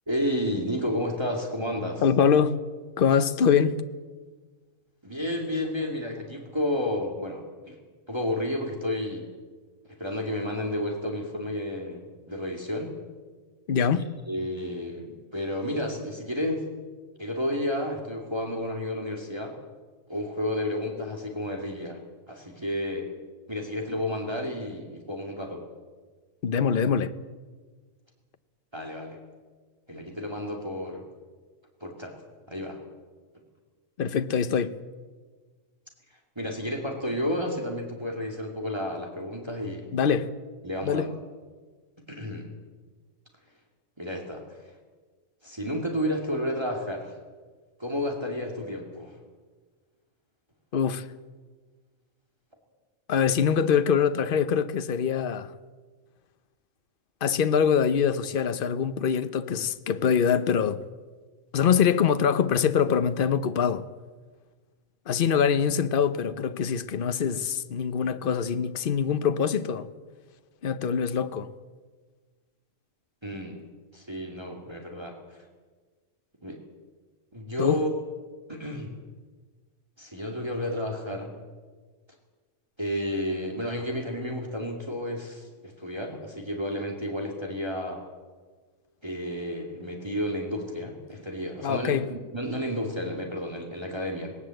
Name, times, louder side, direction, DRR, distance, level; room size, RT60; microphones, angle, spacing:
voice 1, 0.1-2.0 5.0-7.8 8.1-9.3 10.0-12.9 13.9-16.7 17.2-19.5 20.1-22.0 22.3-23.1 23.5-25.6 28.7-29.2 29.9-31.0 31.8-32.1 32.5-32.8 36.4-39.9 40.6-41.2 42.1-42.5 44.0-44.4 45.4-47.1 47.8-49.2 73.2-73.6 73.9-75.4 76.4-76.6 77.3-77.9 78.5-78.9 80.0-81.4 82.8-88.0 89.0-94.4, left 1 dB, 20° right, 2.5 m, -31 dB
voice 2, 2.0-2.6 3.0-3.8 13.7-14.1 26.4-27.1 34.0-34.8 39.9-40.3 40.8-41.1 50.7-51.1 53.1-55.5 57.2-60.8 61.5-63.9 65.1-69.9 70.6-71.5 77.6-77.8 91.6-92.1, left 7 dB, 45° left, 0.9 m, -24 dB
19.0 x 18.5 x 7.8 m
omnidirectional pair, 1.4 m